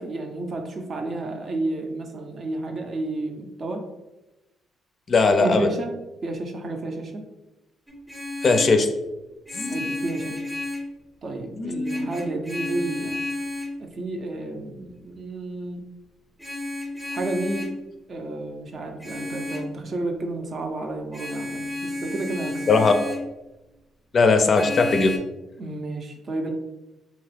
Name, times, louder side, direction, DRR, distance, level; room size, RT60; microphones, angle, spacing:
voice 1, 0.0-3.8 5.4-5.9 6.2-7.3 9.7-10.5 11.2-13.2 13.8-15.8 17.1-17.7 18.1-22.8 25.6-26.5, right 2 dB, 45° right, 4 dB, 0.5 m, -31 dB
voice 2, 5.1-5.7 8.4-8.9 9.5-9.8 11.6-12.1 22.7-22.9 24.1-25.1, left 4 dB, 45° left, 6 dB, 0.4 m, -19 dB
Vehicle horn car horn honking, 7.9-8.8 9.5-10.9 11.8-13.8 16.4-17.8 19.0-19.7 21.1-23.3 24.5-25.2, left 2 dB, ahead, 0.6 m, -32 dB
2.9 x 2.3 x 3.3 m, 1.0 s
cardioid pair, 90°, 0 cm